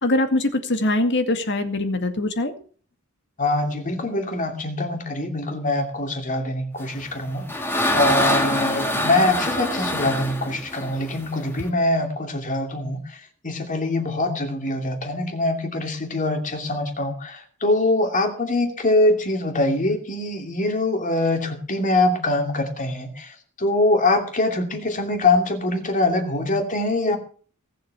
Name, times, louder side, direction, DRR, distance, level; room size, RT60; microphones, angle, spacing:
voice 1, 0.0-2.5, left 2 dB, 55° left, 7 dB, 2.0 m, -22 dB
voice 2, 3.4-7.7 7.9-27.2, left 2 dB, 35° left, 4 dB, 2.8 m, -23 dB
sound 1, 7.0-11.7, left 1 dB, 10° left, 2.0 m, -25 dB
18.5 x 7.8 x 6.9 m, 0.43 s
head